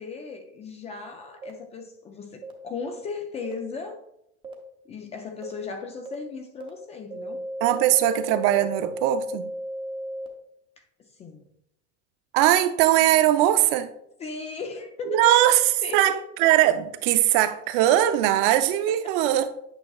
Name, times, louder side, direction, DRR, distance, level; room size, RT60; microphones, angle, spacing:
voice 1, 0.0-4.0 4.9-7.5 11.0-11.4 14.2-16.2, left 4 dB, 20° left, 0.4 m, -36 dB
sound 1, 1.4-1.5 2.4-2.5 3.4-3.5 4.4-4.5 5.4-5.5 6.1-6.2 6.6-6.7 7.1-10.3, right 1 dB, 15° right, 0.7 m, -34 dB
voice 2, 7.6-9.5 12.3-13.9 15.1-15.6 15.9-16.1 16.4-19.5, right 13 dB, 55° right, 0.6 m, -20 dB
8.8 x 5.7 x 2.3 m
supercardioid pair, 150°, 33 cm